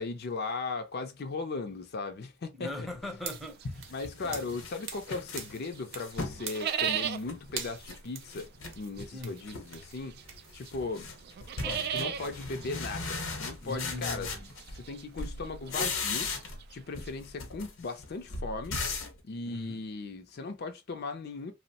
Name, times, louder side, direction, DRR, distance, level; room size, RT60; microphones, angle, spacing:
voice 1, 0.0-2.9 3.9-8.5 8.8-10.3 10.5-11.1 11.9-14.3 14.7-16.3 16.7-18.8 19.2-21.5, left 3 dB, 50° left, 0.5 m, -37 dB
voice 2, 2.6-3.9 4.2-4.4 9.1-9.4 11.6-11.9 13.6-14.5 19.5-19.8, left 2 dB, ahead, 0.6 m, -40 dB
sound 1, 3.0-3.1 3.6-6.5 6.9-8.0 8.3-9.1 9.4-9.9 10.2-14.9 15.2-16.7 16.9-19.2, left 3 dB, 80° left, 0.8 m, -38 dB
sound 2, 3.2-5.1 5.4-6.2 6.4-7.3 7.6-10.5, right 7 dB, 70° right, 0.7 m, -43 dB
sound 3, 3.3-5.3 5.6-17.1, right 9 dB, 50° right, 0.3 m, -38 dB
2.9 x 2.1 x 2.7 m
head